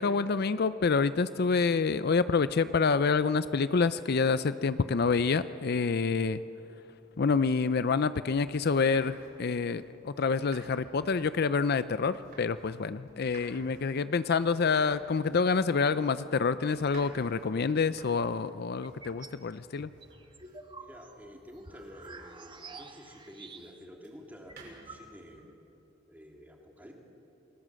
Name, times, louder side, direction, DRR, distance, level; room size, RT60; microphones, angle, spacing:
voice 1, 0.0-6.4 7.2-19.9, left 4 dB, 55° left, 13 dB, 0.5 m, -27 dB
sound 1, 8.6-12.8 13.1-23.0 24.0-25.1, right 3 dB, 55° right, 6.8 m, -55 dB
sound 2, 18.8-19.4 19.8-24.0 24.2-24.3 24.5-25.5, right 3 dB, 25° right, 1.6 m, -49 dB
voice 2, 20.8-25.5 26.1-26.9, equal, 10° right, 0 dB, 3.1 m, -50 dB
29.0 x 20.0 x 7.6 m, 2.9 s
head